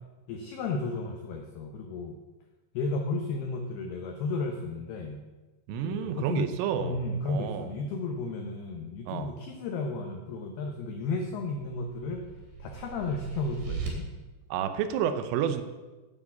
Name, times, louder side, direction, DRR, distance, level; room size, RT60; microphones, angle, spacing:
voice 1, 0.3-2.1 2.7-5.2 5.8-6.5 6.8-12.2 12.6-14.1, left 3 dB, 85° left, 3 dB, 2.2 m, -33 dB
voice 2, 5.7-7.0 7.3-7.7 9.1-9.3 14.5-15.6, right 9 dB, 80° right, 9 dB, 3.2 m, -30 dB
sound 1, 11.3-13.9, right 7 dB, 60° right, 4.8 m, -39 dB
9.6 x 8.2 x 8.4 m, 1.2 s
omnidirectional pair, 6.0 m